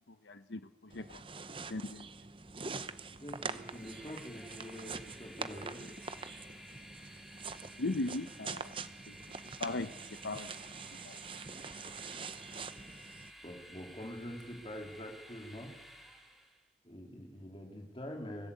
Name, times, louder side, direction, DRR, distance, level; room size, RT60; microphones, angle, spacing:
voice 1, 0.2-1.2 1.7-2.1 7.8-8.7 9.1-9.2 9.6-9.9 10.2-10.5 11.0-11.2, left 2 dB, 75° left, 11 dB, 0.9 m, -38 dB
sound 1, 0.9-13.3, right 4 dB, 30° right, 0.9 m, -45 dB
voice 2, 3.2-5.9 13.4-15.7 16.8-18.5, equal, 30° left, 2 dB, 3.4 m, -45 dB
Train, 3.2-16.7, equal, ahead, 4.3 m, -54 dB
24.5 x 15.5 x 8.4 m, 1.1 s
head